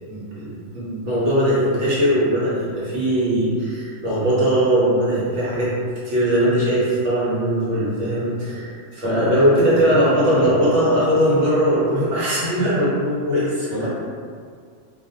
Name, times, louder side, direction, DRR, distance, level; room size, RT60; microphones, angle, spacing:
voice 1, 0.1-5.7 6.0-13.9, equal, 60° right, -8 dB, 1.1 m, -20 dB
voice 2, 9.0-9.4 9.7-10.6 13.7-13.9, left 1 dB, 65° left, -7 dB, 0.8 m, -26 dB
2.4 x 2.3 x 2.7 m, 2.1 s
omnidirectional pair, 1.4 m